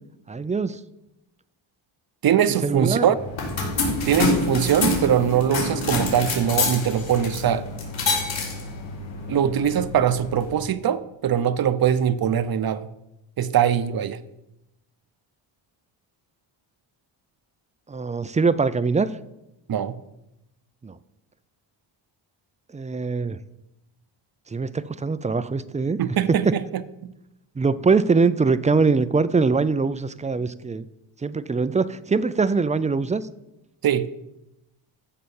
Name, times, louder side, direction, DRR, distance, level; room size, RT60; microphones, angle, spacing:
voice 1, 0.3-0.8 2.6-3.1 17.9-19.1 20.8-21.0 22.7-23.4 24.5-26.0 26.4-26.5 27.6-30.9 31.2-33.2, right 4 dB, 15° right, 14 dB, 0.3 m, -22 dB
voice 2, 2.2-3.1 4.0-7.7 9.3-12.9 13.4-14.2 19.7-19.9 26.0-27.1 33.8-34.1, right 9 dB, 50° right, 13 dB, 0.7 m, -22 dB
sound 1, 3.2-10.6, left 3 dB, 65° left, 4.5 m, -27 dB
14.0 x 5.7 x 7.0 m, 0.91 s
wide cardioid pair, 135°, 48 cm